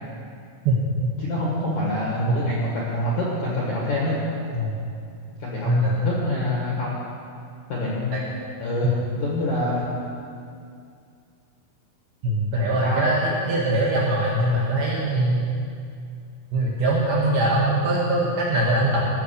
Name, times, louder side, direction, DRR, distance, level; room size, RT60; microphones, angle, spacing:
voice 1, 1.2-4.2 5.4-6.9 7.7-8.2 8.6-9.9 12.8-13.1, left 1 dB, 60° left, -5 dB, 2.0 m, -26 dB
voice 2, 5.6-5.9 8.1-8.2 12.2-15.5 16.5-19.0, right 1 dB, 70° right, -5 dB, 2.4 m, -22 dB
15.5 x 6.6 x 6.8 m, 2.4 s
omnidirectional pair, 5.9 m